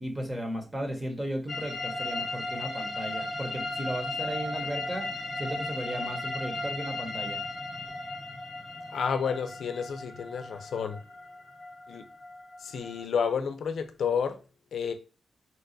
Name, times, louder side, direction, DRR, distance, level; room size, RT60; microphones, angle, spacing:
voice 1, 0.0-5.1 5.4-7.4, equal, 20° right, 0.7 m, -35 dB
sound 1, 1.5-13.0, left 2 dB, 30° left, 0.7 m, -36 dB
voice 2, 8.9-11.0 11.9-12.0 12.6-14.4 14.7-14.9, left 6 dB, 80° left, 0.4 m, -30 dB
4.0 x 2.2 x 2.5 m
wide cardioid pair, 125°, 0 cm